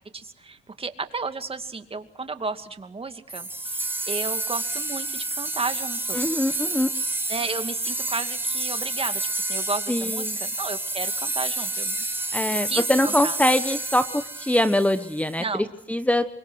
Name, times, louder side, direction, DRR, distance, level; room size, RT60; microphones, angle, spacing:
voice 1, 0.1-6.2 7.3-12.0 12.5-13.4 15.4-15.7, right 4 dB, 30° right, 8 dB, 2.4 m, -33 dB
sound 1, 3.3-15.3, right 2 dB, 10° right, 6.1 m, -29 dB
voice 2, 6.1-6.9 9.9-10.4 12.3-15.4 15.9-16.3, left 1 dB, 5° left, 11 dB, 1.3 m, -23 dB
28.5 x 24.5 x 6.5 m, 0.72 s
cardioid pair, 90°, 20 cm